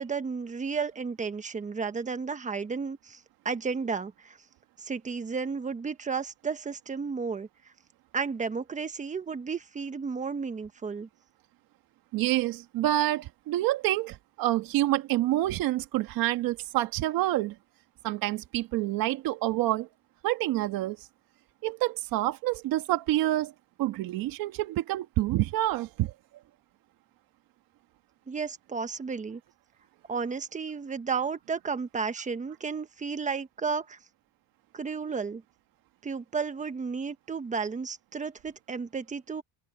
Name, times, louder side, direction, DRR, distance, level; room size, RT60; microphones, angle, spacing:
voice 1, 0.0-4.4 4.8-7.5 8.1-11.1 28.3-29.4 30.1-34.0 34.7-35.4 36.0-39.4, right 5 dB, 20° right, 1.1 m, -33 dB
voice 2, 12.1-17.5 18.0-19.9 20.2-21.0 21.6-23.5 23.8-26.1, right 15 dB, 70° right, 1.7 m, -27 dB
cardioid pair, 145°, 36 cm